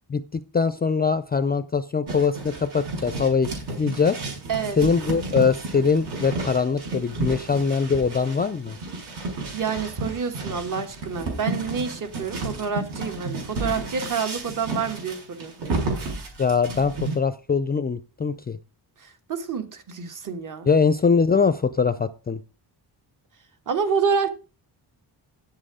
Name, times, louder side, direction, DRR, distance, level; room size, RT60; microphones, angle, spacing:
voice 1, 0.1-4.2 4.8-8.8 16.4-18.6 20.7-22.4, left 5 dB, 25° left, 0.4 m, -22 dB
sound 1, 2.1-17.2, right 3 dB, 70° right, 5.3 m, -32 dB
voice 2, 9.5-15.5 19.0-20.7 23.7-24.3, right 6 dB, 50° right, 1.6 m, -28 dB
10.5 x 7.7 x 4.9 m
wide cardioid pair, 175°, 41 cm